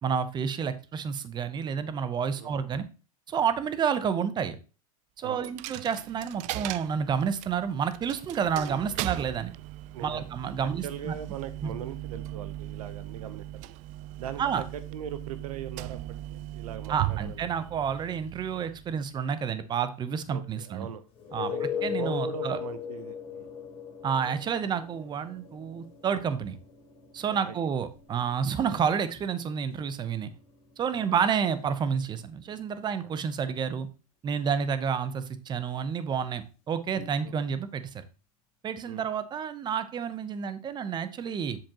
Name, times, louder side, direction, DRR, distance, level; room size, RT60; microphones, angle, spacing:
voice 1, 0.0-2.8 3.3-4.6 5.2-9.5 10.0-11.1 11.6-11.7 14.4-14.6 16.9-20.9 21.3-22.6 24.0-26.6 27.1-30.3 30.8-33.9 34.2-38.0 38.6-41.6, right 7 dB, 25° right, 12 dB, 0.8 m, -30 dB
Coin (dropping), 5.4-19.2, right 15 dB, 40° right, 0.4 m, -38 dB
voice 2, 9.9-10.3 10.6-13.7 14.2-17.5 20.3-21.1 21.4-23.5 27.4-27.6 28.6-28.8 30.9-31.1 33.0-33.1 37.2-37.3 38.9-39.0, right 9 dB, 80° right, 12 dB, 0.9 m, -40 dB
sound 1, 21.1-32.7 37.0-37.1, left 8 dB, 30° left, 2.9 m, -39 dB
7.7 x 7.1 x 3.0 m, 0.33 s
supercardioid pair, 125°, 18 cm